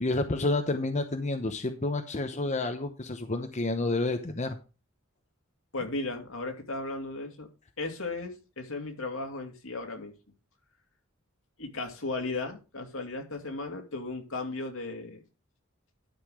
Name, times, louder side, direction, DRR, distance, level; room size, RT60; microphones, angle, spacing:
voice 1, 0.0-4.6, left 2 dB, 35° left, 6 dB, 0.9 m, -29 dB
voice 2, 5.7-7.5 7.8-10.1 11.6-15.2, left 2 dB, 70° left, 3 dB, 2.5 m, -35 dB
11.5 x 5.7 x 4.9 m, 0.31 s
head